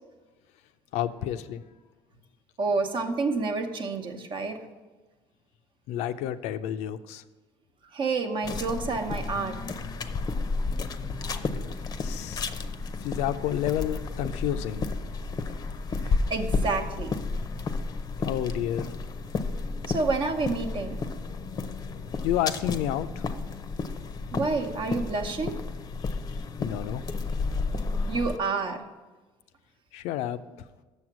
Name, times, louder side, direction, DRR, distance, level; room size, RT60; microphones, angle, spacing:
voice 1, 0.9-1.6 5.9-7.2 12.0-12.5 13.0-14.9 18.2-18.9 22.2-23.2 26.0-27.0 29.9-30.4, left 11 dB, 80° left, 11 dB, 0.4 m, -30 dB
voice 2, 2.6-4.6 7.9-9.6 16.0-17.1 19.9-21.0 24.3-25.6 28.1-28.8, right 3 dB, 45° right, 6 dB, 1.0 m, -29 dB
sound 1, 8.4-28.4, left 4 dB, 35° left, 0.6 m, -32 dB
6.8 x 6.4 x 6.0 m, 1.2 s
cardioid pair, 100°, 11 cm